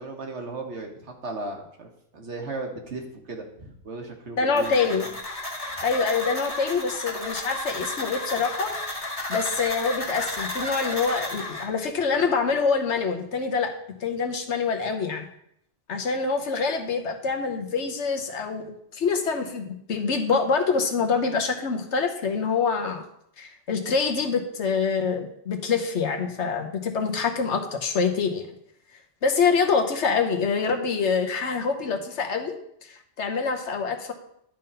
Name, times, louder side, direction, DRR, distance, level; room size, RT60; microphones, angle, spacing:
voice 1, 0.0-5.1, right 2 dB, 65° right, 2 dB, 1.5 m, -36 dB
voice 2, 4.4-5.1 5.8-8.8 9.3-13.7 14.0-15.3 15.9-23.0 23.4-28.5 29.2-32.5 32.8-34.1, left 5 dB, 65° left, 4 dB, 1.2 m, -25 dB
sound 1, 4.6-11.6, left 2 dB, 25° left, 1.9 m, -33 dB
11.0 x 3.9 x 5.4 m, 0.73 s
omnidirectional pair, 1.3 m